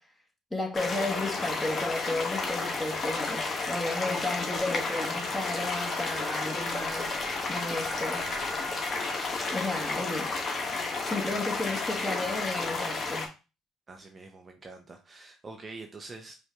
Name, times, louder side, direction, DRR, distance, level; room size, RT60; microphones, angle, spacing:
voice 1, 0.5-8.3 9.5-10.3 11.1-13.3, left 2 dB, 10° left, 1.7 m, -33 dB
sound 1, 0.7-13.3, left 3 dB, 40° left, 1.3 m, -32 dB
Wind instrument woodwind instrument, 4.9-12.8, right 4 dB, 65° right, 0.6 m, -47 dB
voice 2, 13.9-16.4, right 3 dB, 30° right, 0.8 m, -45 dB
5.2 x 2.7 x 3.5 m
hypercardioid pair, 60°, 0 cm